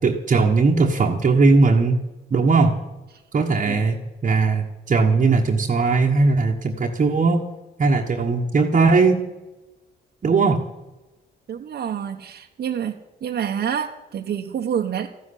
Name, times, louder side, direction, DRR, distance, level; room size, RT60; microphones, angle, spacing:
voice 1, 0.0-2.0 2.3-2.8 3.3-7.5 7.8-9.2 10.2-10.6, right 4 dB, 40° right, 0 dB, 1.3 m, -18 dB
voice 2, 11.5-13.0 13.2-15.1, right 8 dB, 55° right, 0 dB, 1.1 m, -27 dB
14.0 x 7.6 x 10.0 m, 1.1 s
cardioid pair, 90°, 20 cm